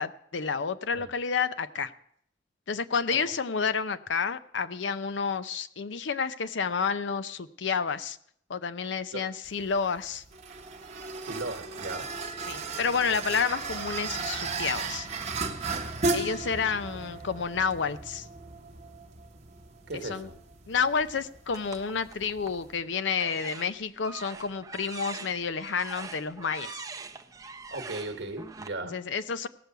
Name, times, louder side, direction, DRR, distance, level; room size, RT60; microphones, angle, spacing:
voice 1, 0.0-1.9 2.7-8.2 8.5-10.2 12.5-15.1 16.1-18.3 20.1-20.3 20.7-26.8 28.8-29.5, left 5 dB, 70° left, 12 dB, 0.6 m, -30 dB
sound 1, 9.5-22.8, right 3 dB, 35° right, 0.9 m, -36 dB
voice 2, 11.2-12.1 17.0-17.1 19.9-20.4 27.7-29.0, right 2 dB, 65° right, 6 dB, 1.2 m, -37 dB
sound 2, 21.5-22.7 23.1-28.7, right 4 dB, 20° right, 0.5 m, -43 dB
17.5 x 6.8 x 4.6 m, 0.68 s
head